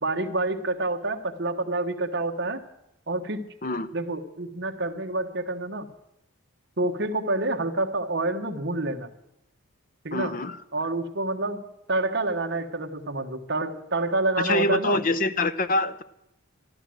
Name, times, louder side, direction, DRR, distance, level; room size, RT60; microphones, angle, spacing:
voice 1, 0.0-2.6 3.1-3.4 3.9-5.9 6.8-9.1 10.0-10.3 10.7-11.6 11.9-15.0, right 2 dB, 50° right, 4 dB, 1.2 m, -28 dB
voice 2, 10.1-10.6 14.4-16.0, left 2 dB, 40° left, 12 dB, 0.6 m, -25 dB
13.0 x 11.5 x 7.7 m, 0.85 s
head